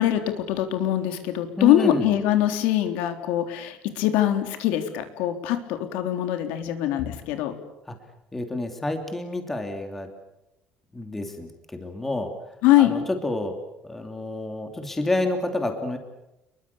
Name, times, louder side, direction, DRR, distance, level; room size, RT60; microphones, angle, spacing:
voice 1, 0.0-7.5 12.6-12.9, left 12 dB, 80° left, 7 dB, 3.6 m, -23 dB
voice 2, 1.6-2.1 7.9-8.0 8.3-10.1 10.9-12.3 12.8-13.6 13.8-16.0, left 2 dB, 10° left, 5 dB, 3.0 m, -29 dB
29.5 x 23.0 x 7.1 m, 0.92 s
cardioid pair, 180°, 3 cm